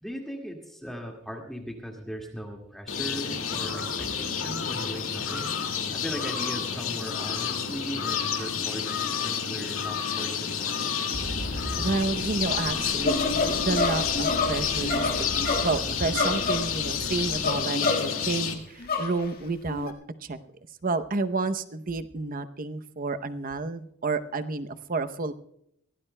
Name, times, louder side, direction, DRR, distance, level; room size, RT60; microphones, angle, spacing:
voice 1, 0.0-10.9, equal, ahead, 1 dB, 2.0 m, -38 dB
sound 1, 2.9-18.5, left 7 dB, 70° left, 2.2 m, -30 dB
sound 2, 11.1-17.5, equal, 75° right, 6.9 m, -38 dB
voice 2, 11.8-15.1 15.4-19.9 20.2-20.4 20.8-25.3, right 3 dB, 40° right, 10 dB, 0.7 m, -30 dB
sound 3, 13.0-18.3 18.8-19.3 19.7-19.9, left 3 dB, 45° left, 1.7 m, -28 dB
23.0 x 16.5 x 2.2 m, 0.72 s
head